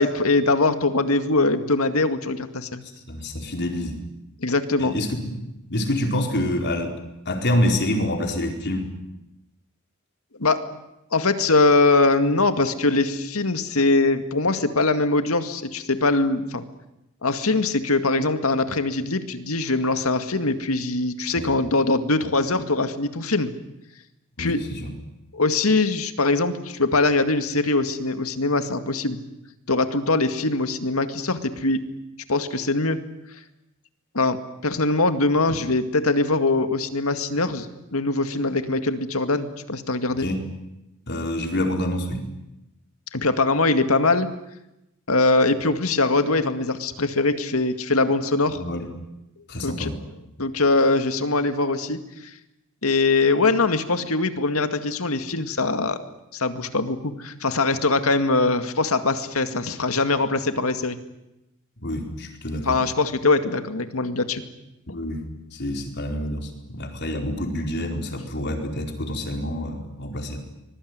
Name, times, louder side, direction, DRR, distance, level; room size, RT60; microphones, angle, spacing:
voice 1, 0.0-2.8 4.4-4.9 10.4-10.6 11.1-16.6 17.2-23.5 24.4-24.6 25.3-29.2 29.7-31.8 32.3-33.0 34.1-40.3 43.1-44.3 45.1-48.6 49.6-49.9 50.4-52.0 52.8-56.0 56.3-61.0 62.7-64.4, left 3 dB, 85° left, 9 dB, 2.1 m, -22 dB
voice 2, 2.8-4.0 4.8-5.4 5.7-7.0 7.2-8.9 21.3-21.5 24.4-24.9 35.5-35.6 40.2-40.5 41.1-42.3 48.6-48.9 49.5-50.0 61.8-62.8 64.9-65.2 65.5-70.4, left 1 dB, 55° left, 3 dB, 4.6 m, -27 dB
25.0 x 21.5 x 9.6 m, 0.89 s
head